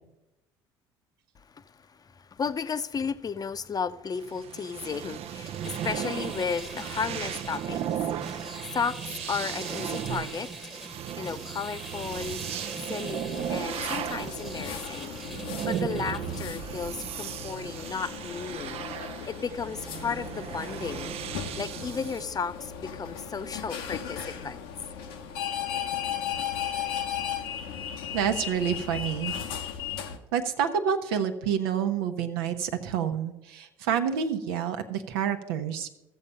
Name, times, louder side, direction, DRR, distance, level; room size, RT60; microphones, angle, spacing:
voice 1, 1.4-7.8 8.3-10.7 11.2-12.6 12.9-18.8 19.3-21.1 21.6-24.7, left 5 dB, 30° left, 0.7 m, -34 dB
sound 1, 4.1-22.2, right 10 dB, 55° right, 0.5 m, -36 dB
sound 2, 5.3-16.4, right 1 dB, 5° right, 1.1 m, -43 dB
sound 3, 13.3-30.2, left 8 dB, 80° left, 1.0 m, -36 dB
voice 2, 28.1-29.7 30.3-35.9, right 8 dB, 80° right, 1.0 m, -28 dB
14.0 x 7.2 x 5.6 m
hypercardioid pair, 65°, 12 cm